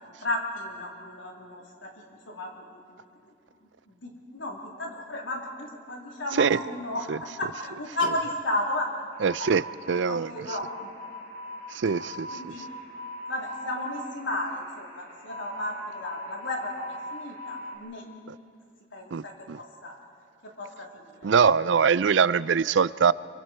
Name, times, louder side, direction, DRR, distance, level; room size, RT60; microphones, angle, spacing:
voice 1, 0.0-3.0 3.3-3.4 3.9-7.1 7.4-8.9 9.4-9.5 9.9-10.9 12.3-12.6 13.3-18.0 18.9-19.9 20.4-21.3, left 1 dB, 85° left, -1 dB, 3.6 m, -34 dB
sound 1, 9.1-17.8, equal, 55° left, 5.5 m, -41 dB
voice 2, 9.2-10.3 11.7-12.5 19.1-19.6 21.2-23.1, right 6 dB, 75° right, 18 dB, 0.5 m, -23 dB
27.0 x 24.0 x 4.5 m, 2.4 s
head